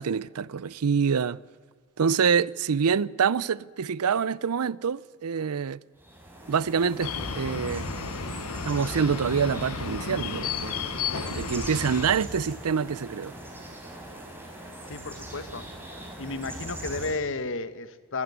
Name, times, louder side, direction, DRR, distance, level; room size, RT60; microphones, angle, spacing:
voice 1, 0.0-1.4 2.0-5.8 6.5-7.9 8.6-10.8 11.3-13.3, right 6 dB, 80° right, 0.5 m, -26 dB
sound 1, 6.0-17.1, right 1 dB, 10° right, 4.4 m, -40 dB
sound 2, 7.0-12.1, left 5 dB, 75° left, 1.2 m, -33 dB
voice 2, 14.9-15.7 16.2-18.2, left 3 dB, 60° left, 1.2 m, -33 dB
22.0 x 15.0 x 9.4 m
head